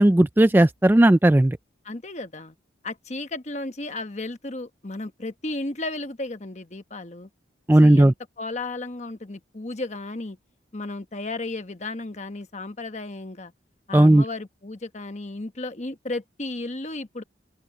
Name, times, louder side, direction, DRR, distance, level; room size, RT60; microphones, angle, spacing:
voice 1, 0.0-1.6 7.7-8.1 13.9-14.2, right 1 dB, 10° right, 0.3 m, -15 dB
voice 2, 1.8-2.5 2.8-7.3 7.8-10.4 10.7-13.5 13.9-17.2, left 2 dB, 35° left, 1.1 m, -34 dB
open air
head